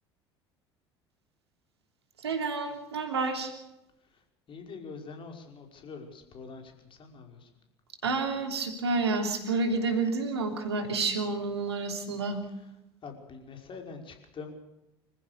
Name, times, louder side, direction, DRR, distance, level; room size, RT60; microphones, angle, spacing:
voice 1, 2.2-3.5 8.0-12.4, right 3 dB, 75° right, 5 dB, 3.2 m, -29 dB
voice 2, 4.5-6.7 7.0-7.5 13.0-14.5, left 4 dB, 40° left, 4 dB, 5.4 m, -44 dB
26.5 x 15.0 x 6.8 m, 0.93 s
figure-of-eight pair, 60°, 14 cm